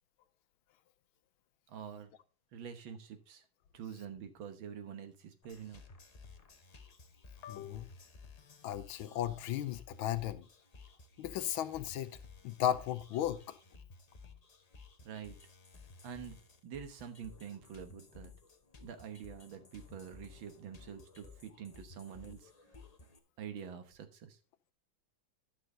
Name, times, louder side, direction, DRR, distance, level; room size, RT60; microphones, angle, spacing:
voice 1, 1.7-2.1 2.5-3.4 3.7-5.8 15.1-15.4 16.0-16.4 16.6-18.3 18.8-22.5 23.4-24.4, right 8 dB, 75° right, 1.9 m, -46 dB
sound 1, 5.4-23.2, left 4 dB, 60° left, 0.4 m, -56 dB
voice 2, 7.4-7.9 8.6-10.5 11.2-12.2 12.4-13.6, left 11 dB, 85° left, 1.5 m, -35 dB
11.5 x 6.2 x 3.8 m
omnidirectional pair, 2.2 m